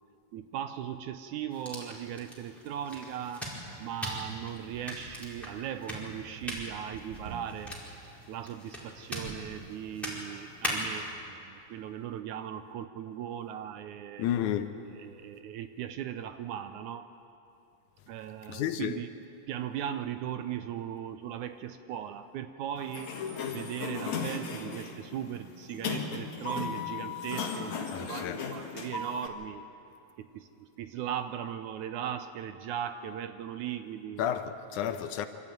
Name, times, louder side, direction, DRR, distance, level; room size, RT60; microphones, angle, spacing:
voice 1, 0.3-3.5 3.8-7.8 8.3-14.3 15.0-17.1 18.1-19.1 19.5-23.1 23.5-29.6 30.2-34.2, right 10 dB, 75° right, 1.9 m, -38 dB
sound 1, 1.5-11.1, equal, ahead, 4.5 m, -40 dB
sound 2, 4.9-7.7 9.1-9.5, right 4 dB, 60° right, 2.6 m, -49 dB
voice 2, 14.2-14.7 18.5-19.0 27.9-28.4 34.2-35.3, left 10 dB, 75° left, 2.0 m, -31 dB
Sliding door, 22.8-29.3, left 5 dB, 60° left, 3.1 m, -36 dB
25.5 x 13.5 x 9.3 m
omnidirectional pair, 3.9 m